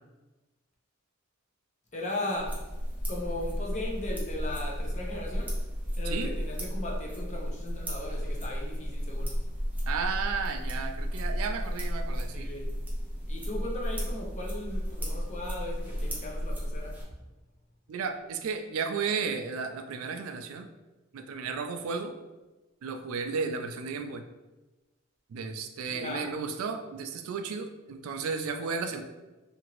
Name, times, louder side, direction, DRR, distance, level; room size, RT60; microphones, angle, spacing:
voice 1, 1.9-2.6 3.1-5.5 6.0-9.3 12.3-12.7 13.3-16.9 25.9-26.3, left 1 dB, 35° left, -2 dB, 0.6 m, -37 dB
sound 1, 2.4-17.0, equal, 10° right, 0.5 m, -33 dB
voice 2, 9.9-12.5 17.9-20.7 21.1-22.1 22.8-24.2 25.3-29.0, right 5 dB, 80° right, 7 dB, 0.3 m, -33 dB
2.8 x 2.5 x 2.9 m, 1.1 s
head